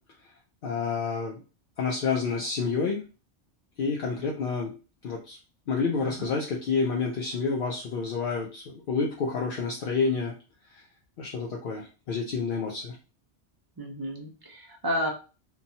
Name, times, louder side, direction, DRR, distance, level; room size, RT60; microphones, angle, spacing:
voice 1, 0.6-1.4 1.8-3.0 3.8-4.7 5.0-5.4 5.7-10.3 11.2-13.0, left 4 dB, 60° left, -1 dB, 0.6 m, -29 dB
voice 2, 5.8-6.3 13.8-15.1, equal, 35° right, 1 dB, 0.4 m, -32 dB
2.9 x 2.2 x 2.7 m, 0.33 s
omnidirectional pair, 1.2 m